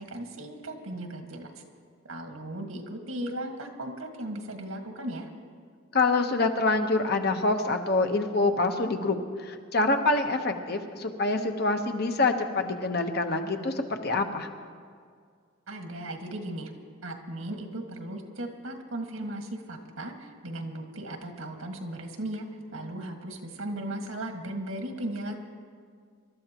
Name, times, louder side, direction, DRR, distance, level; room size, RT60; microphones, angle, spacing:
voice 1, 0.0-1.5 2.0-5.3 15.7-16.7 17.0-25.3, right 1 dB, 90° right, 3 dB, 1.8 m, -37 dB
voice 2, 5.9-9.2 9.4-14.5, left 3 dB, 50° left, 5 dB, 1.0 m, -26 dB
26.5 x 13.0 x 3.0 m, 2.1 s
head